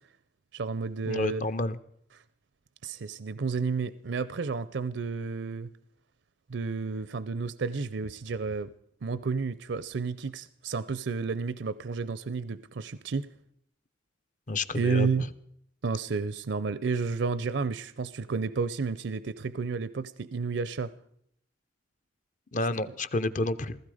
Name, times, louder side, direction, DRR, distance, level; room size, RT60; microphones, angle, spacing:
voice 1, 0.5-1.4 2.8-5.7 6.5-8.7 9.0-13.3 14.7-15.3 15.8-20.9 22.9-23.0, right 4 dB, 70° right, 0.5 m, -31 dB
voice 2, 1.1-1.8 14.5-15.3 22.5-23.8, left 2 dB, 45° left, 0.7 m, -30 dB
16.5 x 15.0 x 4.9 m
head